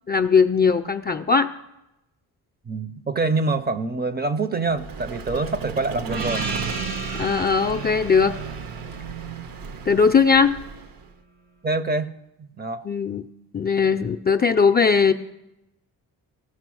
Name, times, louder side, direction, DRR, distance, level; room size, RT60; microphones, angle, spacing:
voice 1, 0.1-1.5 7.2-8.3 9.9-10.6 12.8-13.2 13.5-15.1, left 5 dB, 25° left, 6 dB, 0.4 m, -19 dB
voice 2, 2.7-6.4 11.6-12.2 12.6-12.8, right 3 dB, 25° right, 12 dB, 0.5 m, -25 dB
Vehicle, 4.7-11.1, right 6 dB, 65° right, 0.7 m, -35 dB
Gong, 6.1-10.4, right 3 dB, 90° right, 2.9 m, -34 dB
15.0 x 5.5 x 6.2 m, 0.91 s
cardioid pair, 85°, 38 cm